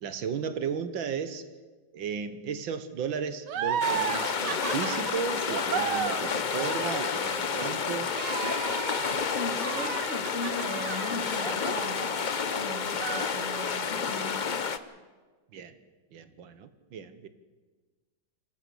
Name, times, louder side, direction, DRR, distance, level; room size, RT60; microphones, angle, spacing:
voice 1, 0.0-1.5 1.9-8.1 15.5-15.8 16.1-17.3, right 6 dB, 80° right, 12 dB, 1.9 m, -35 dB
sound 1, 3.5-12.5 12.9-13.9, right 8 dB, 65° right, 1.5 m, -35 dB
sound 2, 3.8-14.8, left 6 dB, 85° left, 0.4 m, -30 dB
voice 2, 9.3-12.1 12.5-14.5, left 2 dB, 35° left, 2 dB, 3.3 m, -38 dB
27.0 x 12.5 x 8.5 m, 1.4 s
omnidirectional pair, 2.1 m